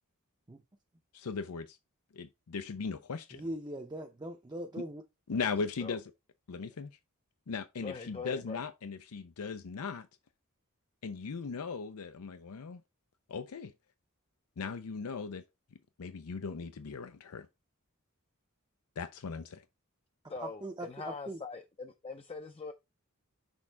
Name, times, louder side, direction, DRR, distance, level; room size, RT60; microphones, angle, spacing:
voice 1, 1.1-1.8 2.1-3.4 5.3-6.0 6.5-6.9 7.5-10.1 11.0-12.8 13.3-13.7 14.6-15.4 16.0-17.5 19.0-19.6, left 5 dB, 85° left, 0.5 m, -38 dB
voice 2, 3.3-5.0 20.4-21.4, right 1 dB, 20° right, 0.6 m, -40 dB
voice 3, 7.8-8.6 20.3-22.7, left 4 dB, 25° left, 0.5 m, -42 dB
6.3 x 3.6 x 4.5 m
head